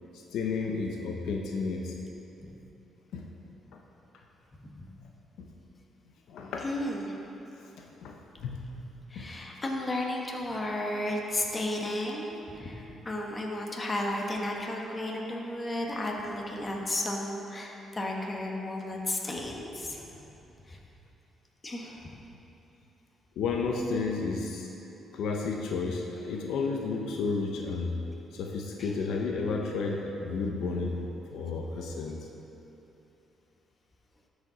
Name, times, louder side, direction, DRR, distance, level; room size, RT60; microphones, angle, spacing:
voice 1, 0.3-2.0 3.1-3.3 3.7-3.8 5.4-5.5 6.3-6.7 7.8-8.6 9.1-9.3 23.4-24.7 25.1-27.9 28.3-31.0 31.3-32.2, left 4 dB, 80° left, 1 dB, 0.7 m, -32 dB
voice 2, 6.6-7.1 9.1-20.0 20.7-20.8 21.6-22.1 28.8-28.9, left 1 dB, 25° left, 0 dB, 1.2 m, -33 dB
12.5 x 5.1 x 3.9 m, 3.0 s
cardioid pair, 90°, 0 cm